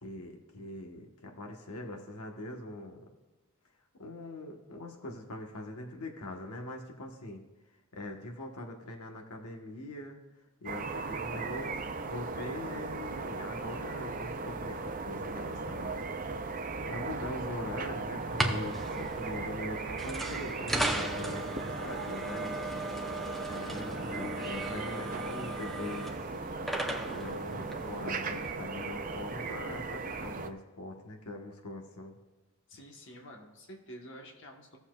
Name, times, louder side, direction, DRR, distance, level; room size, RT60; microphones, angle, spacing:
voice 1, 0.0-3.0 4.0-7.4 7.9-10.2 10.6-16.1 16.9-22.6 23.4-26.3 27.0-32.2, left 1 dB, 85° left, 2 dB, 1.2 m, -42 dB
sound 1, 10.6-30.5, right 3 dB, 35° right, 0.5 m, -37 dB
sound 2, 18.2-28.5, right 1 dB, ahead, 0.7 m, -37 dB
voice 2, 32.7-34.8, equal, 55° left, 1 dB, 1.2 m, -48 dB
17.0 x 7.0 x 2.3 m, 1.2 s
head